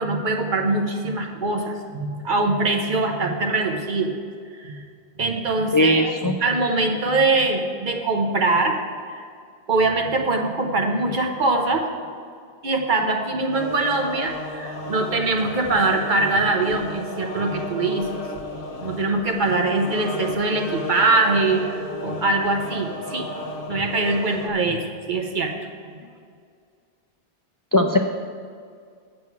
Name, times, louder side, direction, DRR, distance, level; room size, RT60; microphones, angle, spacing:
voice 1, 0.0-4.1 4.6-4.8 5.2-8.8 9.1-9.2 9.7-11.9 12.6-18.1 18.5-23.3 23.7-24.8 25.1-25.5, right 3 dB, 50° right, 3 dB, 1.1 m, -23 dB
voice 2, 5.7-6.3 27.7-28.1, left 1 dB, 35° left, 3 dB, 0.3 m, -18 dB
sound 1, 13.5-24.5, left 2 dB, 60° left, 1.0 m, -34 dB
7.9 x 7.6 x 5.8 m, 2.2 s
omnidirectional pair, 1.1 m